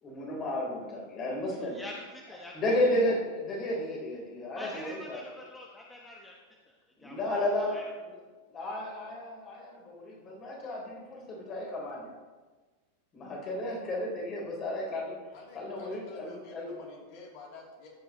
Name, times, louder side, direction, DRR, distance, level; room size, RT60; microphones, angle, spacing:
voice 1, 0.0-1.8 2.5-5.2 7.0-7.8 8.0-8.2 8.5-12.2 13.1-15.2 15.5-16.8, left 1 dB, 30° left, -2 dB, 3.6 m, -33 dB
voice 2, 1.6-2.5 4.5-6.3 6.7-7.4 7.7-7.8, left 1 dB, 10° left, -1 dB, 1.0 m, -46 dB
voice 3, 15.3-17.9, left 3 dB, 45° left, -3 dB, 2.9 m, -49 dB
14.0 x 9.2 x 3.0 m, 1.3 s
figure-of-eight pair, 90°, 0 cm